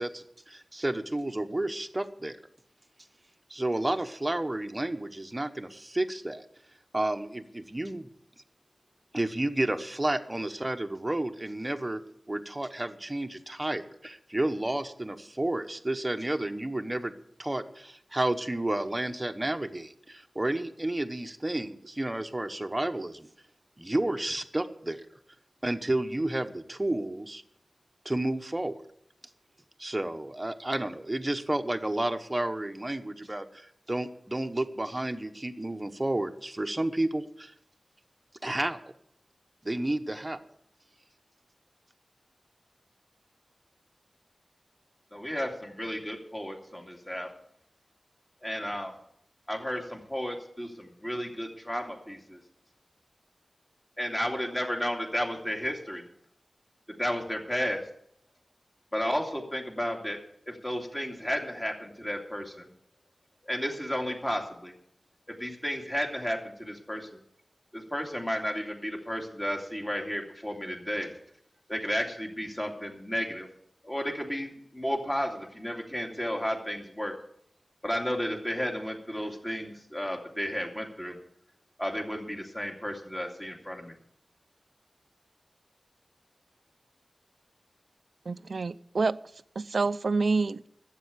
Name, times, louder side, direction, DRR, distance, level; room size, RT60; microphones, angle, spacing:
voice 1, 0.0-2.4 3.5-6.4 6.9-8.1 9.1-12.0 12.3-17.1 17.4-23.3 23.8-25.0 25.6-27.4 28.0-28.8 29.8-37.5 38.4-38.9 39.6-40.4, right 1 dB, 20° right, 1.0 m, -31 dB
voice 2, 45.1-47.3 48.4-48.9 49.5-52.4 54.0-56.1 57.0-57.8 58.9-60.2 60.5-62.7 63.4-64.7 65.3-67.2 67.7-71.1 71.7-73.5 73.8-77.1 77.8-81.2 81.8-83.9, equal, 15° left, 2.5 m, -33 dB
voice 3, 88.3-89.2 89.6-90.6, right 4 dB, 70° right, 0.4 m, -27 dB
12.5 x 8.3 x 8.3 m
wide cardioid pair, 90°, 0 cm